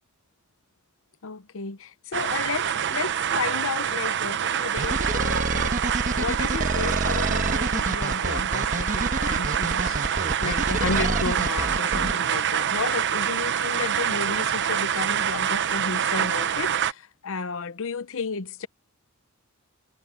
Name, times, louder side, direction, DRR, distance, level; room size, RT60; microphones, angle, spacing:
voice 1, 1.2-5.8 6.2-18.7, left 4 dB, 65° left, 0.8 m, -33 dB
sound 1, 2.1-16.9, right 9 dB, 55° right, 0.7 m, -26 dB
sound 2, 4.8-12.1, right 2 dB, 35° right, 1.2 m, -27 dB
head